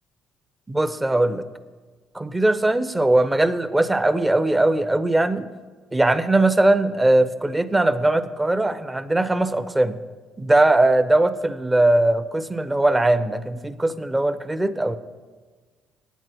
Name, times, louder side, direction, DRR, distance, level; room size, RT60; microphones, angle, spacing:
voice 1, 0.7-1.4 2.1-5.5 5.9-10.0 10.4-15.0, right 2 dB, 15° right, 12 dB, 0.6 m, -20 dB
8.8 x 8.0 x 6.1 m, 1.4 s
cardioid pair, 80°, 0 cm